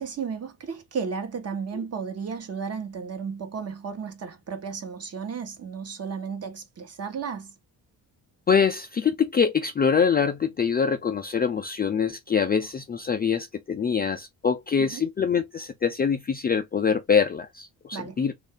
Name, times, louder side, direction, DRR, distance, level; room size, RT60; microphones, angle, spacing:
voice 1, 0.0-7.5 14.8-15.0 17.9-18.2, right 6 dB, 40° right, 1.0 m, -34 dB
voice 2, 8.5-18.3, left 6 dB, 25° left, 0.3 m, -24 dB
3.2 x 2.5 x 3.6 m
cardioid pair, 125°, 38 cm